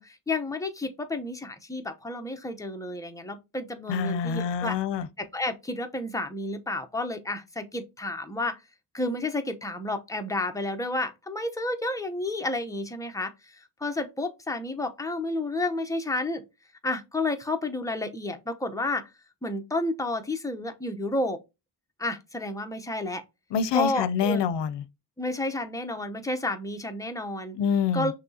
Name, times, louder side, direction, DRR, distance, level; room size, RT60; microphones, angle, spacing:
voice 1, 0.0-4.8 5.2-8.6 8.9-16.4 16.8-19.1 19.4-21.4 22.0-23.2 23.7-24.5 25.2-27.6 27.9-28.1, left 2 dB, 10° left, 0.9 m, -31 dB
voice 2, 3.9-5.1 23.5-24.8 27.6-28.1, left 7 dB, 80° left, 0.6 m, -26 dB
6.1 x 2.9 x 2.8 m
cardioid pair, 90°, 42 cm